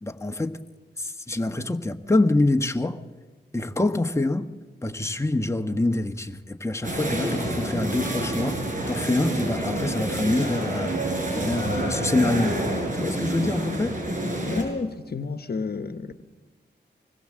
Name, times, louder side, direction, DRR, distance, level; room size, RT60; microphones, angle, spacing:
voice 1, 0.0-0.6 1.0-3.0 3.5-4.5 4.8-8.6 8.9-12.6 13.0-14.0, left 2 dB, 15° left, 1.1 m, -25 dB
sound 1, 6.8-14.6, right 1 dB, 45° right, 7.2 m, -28 dB
voice 2, 14.5-16.2, left 4 dB, 60° left, 1.1 m, -31 dB
25.0 x 20.0 x 7.6 m
cardioid pair, 65°, 19 cm